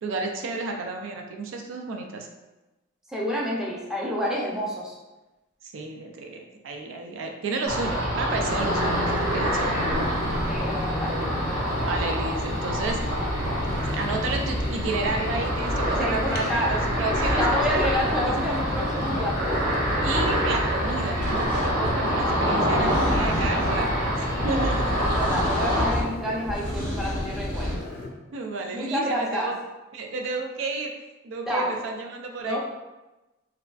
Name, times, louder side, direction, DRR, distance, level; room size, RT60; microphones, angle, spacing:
voice 1, 0.0-2.3 5.6-9.9 11.7-13.3 13.8-17.8 20.0-25.1 28.3-29.6 29.9-30.9 31.2-32.6, right 3 dB, 70° right, 3 dB, 0.4 m, -32 dB
voice 2, 3.1-5.0 10.5-11.6 16.0-16.7 17.4-19.5 22.9-23.3 25.0-27.7 28.7-29.5 31.5-31.7 32.4-32.6, equal, 5° right, -5 dB, 0.4 m, -29 dB
Ocean, 7.7-25.9, equal, 50° right, 1.2 m, -26 dB
sound 1, 8.4-28.1, left 2 dB, 50° left, 0.5 m, -36 dB
sound 2, 21.2-21.7 22.7-23.8 24.4-26.1 26.5-27.8, equal, 30° right, 1.3 m, -31 dB
3.5 x 2.3 x 2.3 m, 1.1 s
head